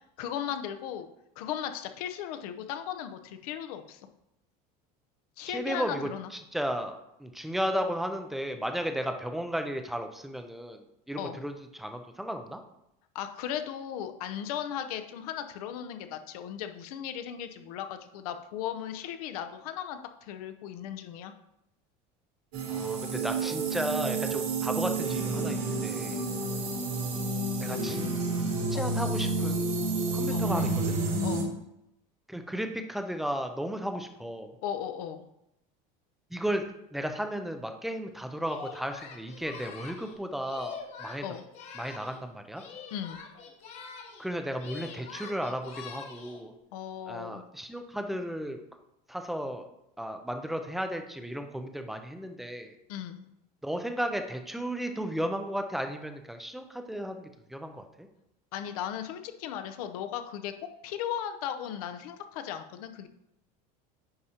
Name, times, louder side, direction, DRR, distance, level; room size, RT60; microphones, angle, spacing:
voice 1, 0.2-1.1 1.4-4.0 5.4-6.3 11.2-11.4 13.1-21.3 27.6-28.0 28.7-28.9 30.3-30.5 31.2-31.5 34.6-35.3 41.2-41.4 42.9-43.2 46.7-47.4 52.9-53.2 58.5-60.5 60.8-63.1, left 9 dB, 90° left, 8 dB, 0.7 m, -37 dB
voice 2, 5.5-10.8 11.1-12.6 22.7-26.2 27.6-28.1 28.7-31.0 32.3-34.6 36.3-41.3 41.7-42.6 44.2-46.5 47.1-48.6 49.1-49.6 50.0-52.7 53.6-58.1, equal, ahead, 6 dB, 0.3 m, -34 dB
sound 1, 22.5-31.4, right 3 dB, 75° right, 2.2 m, -30 dB
Singing, 38.4-42.2 42.5-44.3 44.5-46.4, left 5 dB, 35° left, 0.9 m, -44 dB
9.5 x 4.9 x 2.8 m, 0.84 s
cardioid pair, 175°, 19 cm